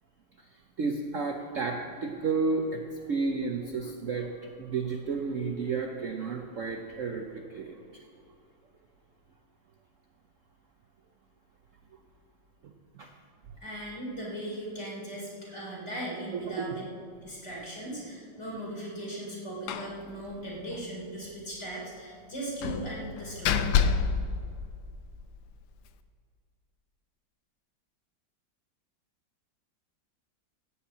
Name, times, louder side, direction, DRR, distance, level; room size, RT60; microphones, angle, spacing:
voice 1, 0.4-8.1 12.6-13.1 13.5-13.6 15.5-15.6, right 4 dB, 55° right, 3 dB, 1.0 m, -32 dB
voice 2, 13.6-16.8 17.2-23.6, right 1 dB, 35° left, -4 dB, 4.0 m, -38 dB
Slam, 19.7-20.0 20.3-20.4 20.7-20.8 22.6-25.2, left 6 dB, 85° left, 1.4 m, -28 dB
16.5 x 5.7 x 8.5 m, 2.4 s
omnidirectional pair, 2.0 m